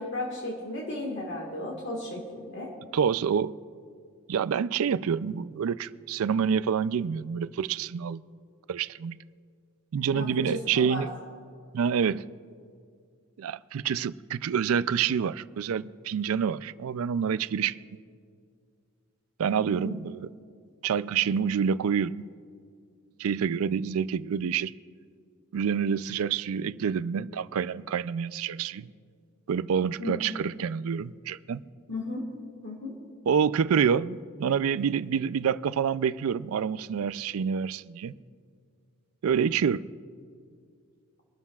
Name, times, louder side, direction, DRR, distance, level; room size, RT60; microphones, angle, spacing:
voice 1, 0.0-2.7 10.1-11.1 19.8-20.0 30.0-30.2 31.9-32.3 32.6-32.9, left 2 dB, 55° left, 1.7 m, -35 dB
voice 2, 2.9-3.5 4.3-8.2 8.7-9.2 9.9-11.1 11.7-12.3 13.4-17.8 19.4-20.3 20.8-22.2 23.2-24.7 25.5-28.9 29.5-31.6 33.3-38.2 39.2-39.8, right 7 dB, 75° right, 0.4 m, -27 dB
24.0 x 12.5 x 2.4 m
head